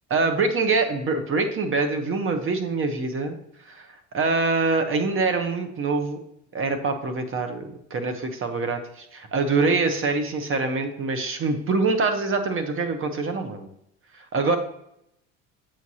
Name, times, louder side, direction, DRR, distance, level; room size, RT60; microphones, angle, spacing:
voice 1, 0.1-3.4 3.7-3.9 4.1-6.2 6.5-13.7 14.1-14.6, right 3 dB, 35° right, 7 dB, 1.0 m, -24 dB
7.3 x 4.7 x 2.8 m, 0.77 s
supercardioid pair, 95°, 37 cm